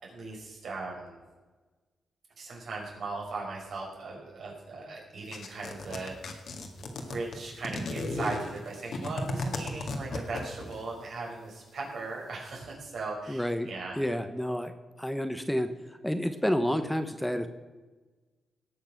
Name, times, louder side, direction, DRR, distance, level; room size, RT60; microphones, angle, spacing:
voice 1, 0.0-1.2 2.4-6.4 6.8-14.0, right 3 dB, 70° right, -2 dB, 4.7 m, -38 dB
sound 1, 5.3-10.8, left 2 dB, 70° left, 1.9 m, -35 dB
voice 2, 13.3-13.7 14.0-14.7 15.0-15.7 16.0-17.5, equal, 5° left, 9 dB, 0.9 m, -29 dB
18.5 x 6.7 x 5.9 m, 1.3 s
cardioid pair, 75°, 0 cm